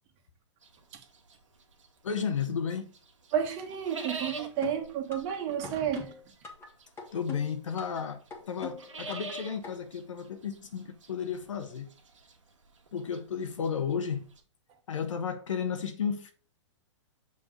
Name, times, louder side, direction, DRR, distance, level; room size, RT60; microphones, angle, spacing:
sound 1, 0.6-2.6 2.9-14.4, right 3 dB, 85° right, 1.6 m, -45 dB
voice 1, 2.0-2.9 7.1-11.9 12.9-14.2 14.9-16.3, left 7 dB, 85° left, 1.2 m, -33 dB
voice 2, 3.3-6.1, right 9 dB, 40° right, 1.4 m, -31 dB
sound 2, 4.6-5.3 5.6-6.7 7.0-8.0 8.3-9.3 9.6-9.7, left 6 dB, 15° left, 1.6 m, -41 dB
6.8 x 3.7 x 5.1 m
hypercardioid pair, 130°, 16 cm